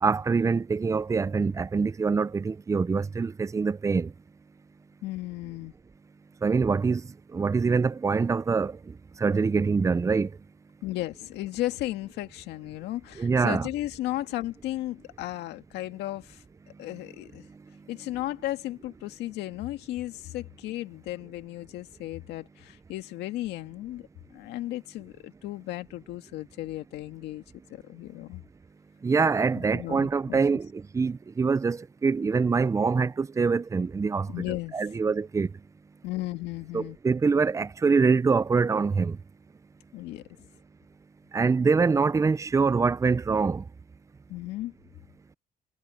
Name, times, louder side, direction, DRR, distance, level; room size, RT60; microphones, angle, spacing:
voice 1, 0.0-4.1 6.4-10.4 13.2-13.7 29.0-34.3 34.7-35.5 36.7-39.2 41.3-43.6, right 4 dB, 20° right, 0.5 m, -25 dB
voice 2, 5.0-5.7 10.8-16.4 16.8-17.5 17.9-27.4 27.7-28.4 29.5-30.4 34.3-34.9 36.0-37.0 39.9-40.5 44.3-44.7, left 16 dB, 85° left, 2.0 m, -35 dB
cardioid pair, 110°, 17 cm